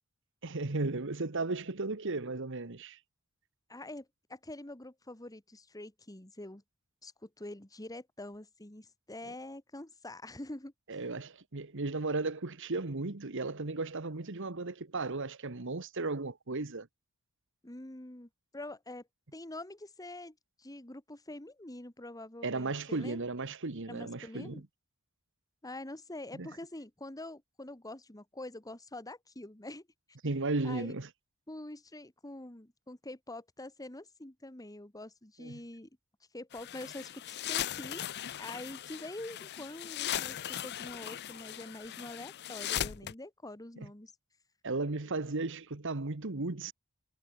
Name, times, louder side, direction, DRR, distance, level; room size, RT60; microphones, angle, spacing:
voice 1, 0.4-3.0 10.9-16.9 22.4-24.6 26.3-26.5 30.2-31.1 35.4-35.6 44.6-46.7, right 3 dB, 60° right, 1.4 m, -35 dB
voice 2, 3.7-6.6 7.0-10.7 17.6-19.1 19.3-23.2 23.9-24.6 25.6-29.9 30.6-31.0 31.5-35.9 36.3-38.1 38.4-44.1, left 1 dB, 15° left, 1.8 m, -45 dB
sound 1, 36.5-43.1, left 11 dB, 50° left, 0.5 m, -38 dB
head